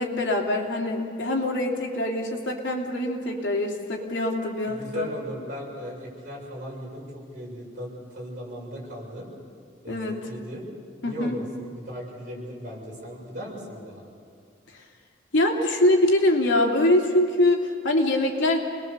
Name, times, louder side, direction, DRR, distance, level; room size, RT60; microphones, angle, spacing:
voice 1, 0.0-5.1 9.9-10.2 11.0-11.4 15.3-18.6, left 1 dB, 90° left, 1 dB, 3.1 m, -23 dB
voice 2, 4.7-9.3 9.8-10.6 11.0-14.1, equal, 45° right, -4 dB, 7.2 m, -37 dB
28.5 x 21.0 x 6.9 m, 2.3 s
head